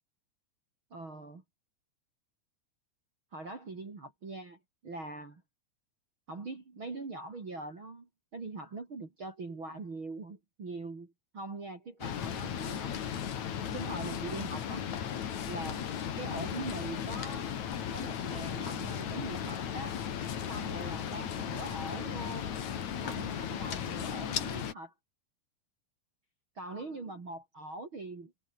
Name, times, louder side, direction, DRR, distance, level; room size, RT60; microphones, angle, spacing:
voice 1, 0.9-1.4 3.3-5.4 6.3-12.9 13.7-14.8 15.5-15.9 16.2-17.6 17.9-20.0 20.5-22.5 23.0-24.9 26.6-28.3, right 2 dB, 30° right, 3.9 m, -42 dB
sound 1, 12.0-24.7, left 8 dB, 50° left, 3.0 m, -36 dB
omnidirectional pair, 4.8 m